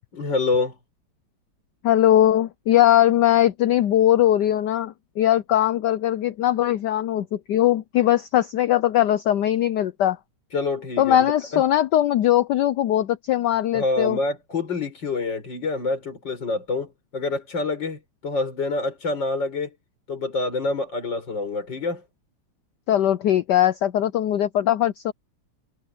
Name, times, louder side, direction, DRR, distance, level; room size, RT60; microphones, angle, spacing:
voice 1, 0.1-0.8 10.5-11.6 13.7-19.7 20.1-22.0, left 3 dB, 55° left, 5.9 m, -27 dB
voice 2, 1.8-10.2 11.0-14.2 22.9-25.1, left 12 dB, 70° left, 1.0 m, -20 dB
omnidirectional pair, 2.3 m